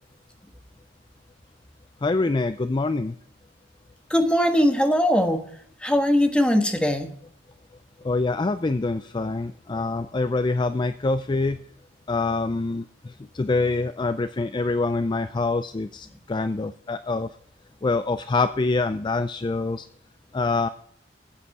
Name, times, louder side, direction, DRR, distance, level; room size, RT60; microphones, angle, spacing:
voice 1, 2.0-3.2 8.0-11.6 12.1-17.3 17.8-19.9 20.3-20.7, left 3 dB, 25° left, 12 dB, 0.4 m, -25 dB
voice 2, 4.1-5.4 5.8-7.1, equal, 5° left, 5 dB, 1.4 m, -20 dB
14.5 x 8.5 x 4.8 m, 0.65 s
head